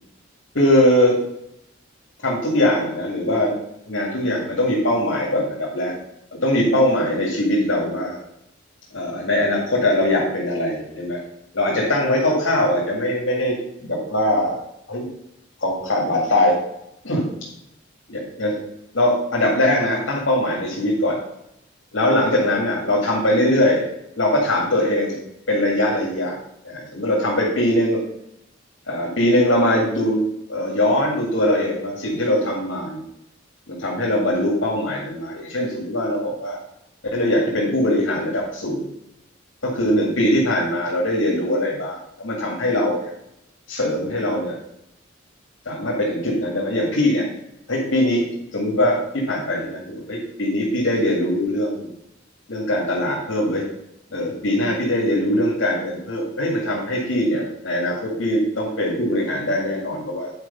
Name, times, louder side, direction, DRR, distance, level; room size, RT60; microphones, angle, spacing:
voice 1, 0.5-1.1 2.2-3.5 3.8-6.0 6.4-8.2 8.9-11.2 11.5-13.5 13.8-14.6 14.9-15.1 15.6-16.6 17.0-17.2 18.1-18.6 18.9-21.2 21.9-23.8 24.2-25.2 25.5-26.4 26.6-28.0 28.9-30.2 30.5-33.0 33.7-36.6 37.1-38.8 39.6-43.1 43.7-44.6 45.7-47.2 47.7-48.2 48.5-51.9 52.5-53.6 54.1-60.3, left 1 dB, 80° left, -4 dB, 2.3 m, -21 dB
9.7 x 4.8 x 5.6 m, 0.79 s
head